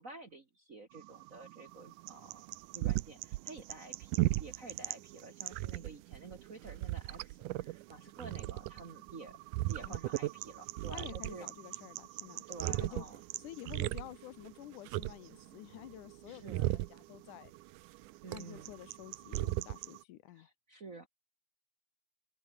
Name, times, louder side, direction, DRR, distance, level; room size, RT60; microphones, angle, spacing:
voice 1, 0.0-9.4 9.7-11.5 12.5-13.2 16.3-16.7 18.2-18.7 20.3-21.1, right 3 dB, 35° right, 1.4 m, -50 dB
sound 1, 1.0-20.0, right 18 dB, 90° right, 2.2 m, -38 dB
voice 2, 10.9-13.1 13.4-17.5 18.3-20.5, left 15 dB, 85° left, 2.5 m, -50 dB
open air
omnidirectional pair, 3.5 m